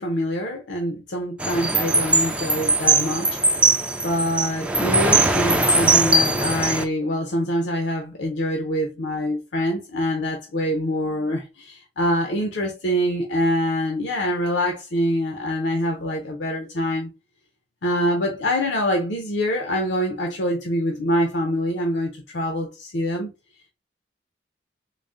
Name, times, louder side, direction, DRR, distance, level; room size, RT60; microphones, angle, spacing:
voice 1, 0.0-3.4 4.0-17.1 17.8-23.3, equal, 70° left, 0.6 m, -25 dB
sound 1, 1.4-6.8, right 2 dB, 5° right, 0.4 m, -20 dB
3.9 x 2.1 x 3.5 m
head